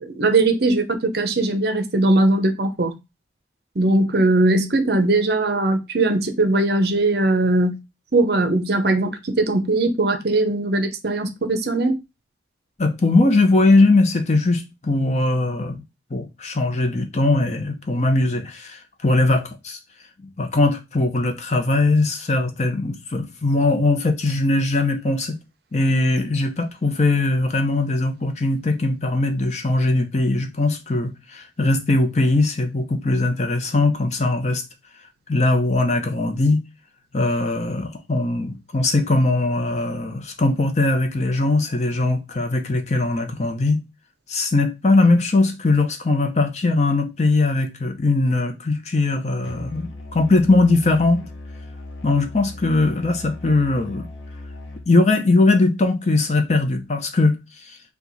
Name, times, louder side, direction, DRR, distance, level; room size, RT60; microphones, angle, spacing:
voice 1, 0.0-2.9 3.8-7.8 8.1-12.0, right 2 dB, 55° right, 0.7 m, -20 dB
voice 2, 12.8-15.8 16.1-19.8 20.4-25.4 25.7-34.6 35.3-36.6 37.1-43.8 44.3-51.2 52.0-54.1 54.9-57.4, left 2 dB, 35° left, 0.6 m, -20 dB
Musical instrument, 49.4-54.9, left 2 dB, 90° left, 1.0 m, -38 dB
4.5 x 2.3 x 4.0 m
head